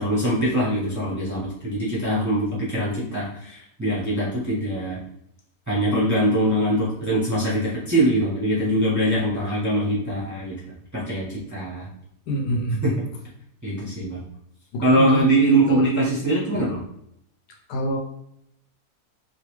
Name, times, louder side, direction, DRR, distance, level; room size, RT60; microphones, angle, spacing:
voice 1, 0.0-5.0 5.7-10.5 10.9-11.9 12.8-12.9 13.6-14.2 14.8-16.8, right 1 dB, 20° right, -7 dB, 0.6 m, -22 dB
voice 2, 12.3-13.0 14.7-15.3 15.7-15.9 17.7-18.0, equal, 80° left, 1 dB, 1.3 m, -26 dB
3.0 x 2.4 x 3.0 m, 0.75 s
omnidirectional pair, 1.7 m